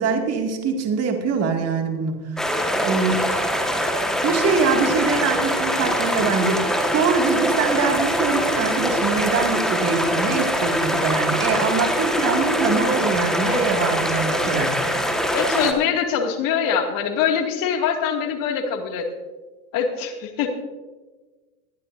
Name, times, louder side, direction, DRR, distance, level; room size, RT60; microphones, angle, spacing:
voice 1, 0.0-2.4 2.8-3.2 4.2-14.8, right 5 dB, 35° right, 3 dB, 2.3 m, -23 dB
sound 1, 2.4-15.7, equal, ahead, 1.5 m, -23 dB
voice 2, 15.3-19.1 19.7-20.5, left 7 dB, 50° left, 4 dB, 2.3 m, -23 dB
21.0 x 11.5 x 2.6 m, 1.3 s
hypercardioid pair, 115°, 44 cm